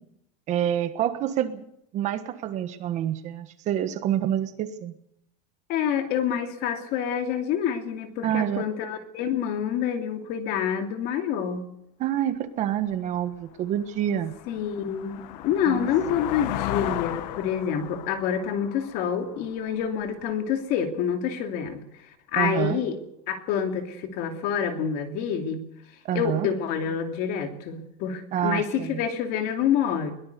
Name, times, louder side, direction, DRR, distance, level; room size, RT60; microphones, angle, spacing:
voice 1, 0.5-1.6 1.9-4.9 8.2-8.6 12.0-14.3 15.7-15.9 22.4-22.8 26.0-26.5 28.3-29.0, right 11 dB, 35° right, 10 dB, 1.4 m, -27 dB
voice 2, 5.7-11.7 14.5-21.8 22.3-23.0 23.3-25.7 26.1-30.1, left 8 dB, 45° left, 6 dB, 2.7 m, -27 dB
sound 1, 12.9-13.0 13.5-20.1, left 14 dB, 85° left, 1.2 m, -35 dB
22.0 x 18.5 x 6.8 m, 0.77 s
cardioid pair, 170°, 21 cm